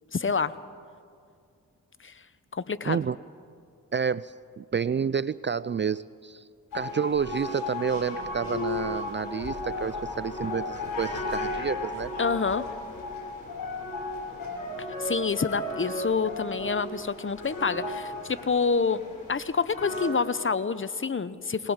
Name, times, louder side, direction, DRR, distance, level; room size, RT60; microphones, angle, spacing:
voice 1, 0.1-0.6 2.0-2.1 2.5-3.0 12.2-12.7 15.0-19.0 19.3-21.7, left 5 dB, 35° left, 15 dB, 0.9 m, -27 dB
voice 2, 2.9-3.2 3.9-6.4 6.7-12.1, right 6 dB, 35° right, 18 dB, 0.4 m, -29 dB
sound 1, 6.7-20.1, left 2 dB, 80° left, 5.2 m, -35 dB
20.0 x 20.0 x 7.3 m, 2.3 s
cardioid pair, 50°, 34 cm